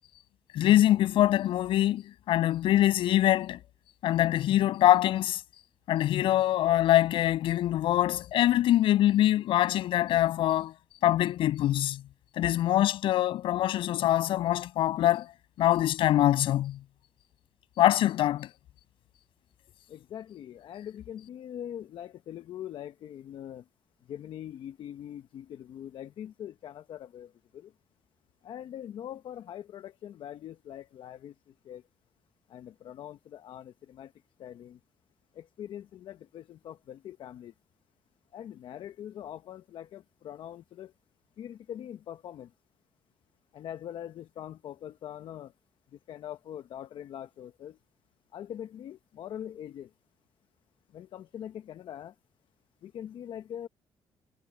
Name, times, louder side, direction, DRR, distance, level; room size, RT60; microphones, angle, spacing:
voice 1, 0.5-3.6 4.0-5.4 5.9-10.7 11.0-12.0 12.4-15.3 15.6-16.8 17.8-18.5, left 13 dB, 85° left, 7.0 m, -24 dB
voice 2, 21.4-22.1 22.3-22.9 23.3-23.6 24.3-25.2 25.8-26.5 28.5-29.6 30.2-31.2 33.0-33.1 33.5-33.6 34.4-34.5 35.7-35.8 37.2-37.3 38.3-39.6 40.3-40.5 43.6-44.1 44.4-44.7 45.0-45.5 46.2-46.8 47.1-47.2 48.3-48.4 49.2-49.7 51.4-51.5 51.9-52.1 53.0-53.7, left 10 dB, 70° left, 0.9 m, -40 dB
cardioid pair, 100°, 9 cm